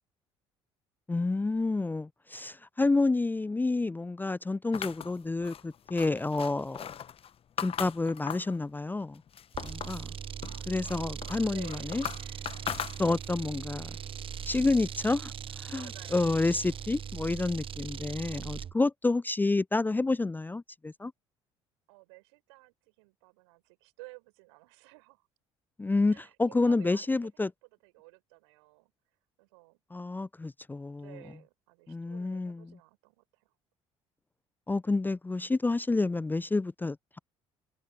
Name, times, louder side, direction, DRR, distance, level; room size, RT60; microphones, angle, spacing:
voice 1, 1.1-6.9 7.6-9.2 9.6-10.1 10.7-12.0 13.0-14.0 14.4-15.3 15.6-15.9 16.1-21.1 25.8-27.5 29.9-31.2 31.9-32.7 34.7-37.2, left 3 dB, 10° left, 0.6 m, -29 dB
sound 1, 4.7-8.6 9.0-10.1 10.4-13.4, left 9 dB, 40° left, 1.2 m, -39 dB
sound 2, 9.5-18.7, right 8 dB, 35° right, 1.0 m, -40 dB
voice 2, 11.2-12.6 15.7-16.6 21.9-25.3 26.1-27.3 27.6-28.9 29.4-29.8 30.9-33.5, right 27 dB, 70° right, 6.0 m, -54 dB
figure-of-eight pair, 55°, 15 cm